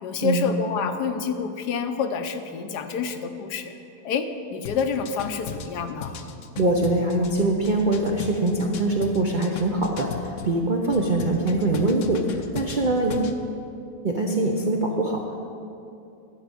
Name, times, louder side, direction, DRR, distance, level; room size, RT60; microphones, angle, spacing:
voice 1, 0.0-3.7 4.0-6.2, left 6 dB, 80° left, 8 dB, 1.3 m, -28 dB
sound 1, 4.6-10.5 10.9-13.4, left 6 dB, 60° left, 0.9 m, -37 dB
voice 2, 6.6-13.3 14.0-15.4, right 2 dB, 55° right, 0 dB, 0.5 m, -23 dB
11.5 x 5.2 x 8.3 m, 2.7 s
omnidirectional pair, 1.8 m